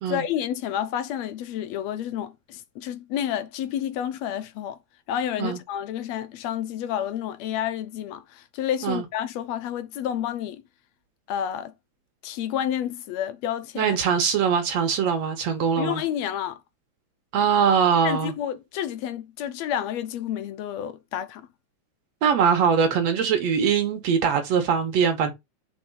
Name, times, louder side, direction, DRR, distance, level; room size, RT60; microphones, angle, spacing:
voice 1, 0.1-4.8 5.1-10.6 11.3-11.7 12.2-14.0 15.8-16.6 18.0-21.5, left 10 dB, 75° left, 1.7 m, -30 dB
voice 2, 13.8-16.0 17.3-18.3 22.2-25.3, right 7 dB, 70° right, 2.1 m, -22 dB
4.5 x 4.3 x 5.4 m
omnidirectional pair, 3.3 m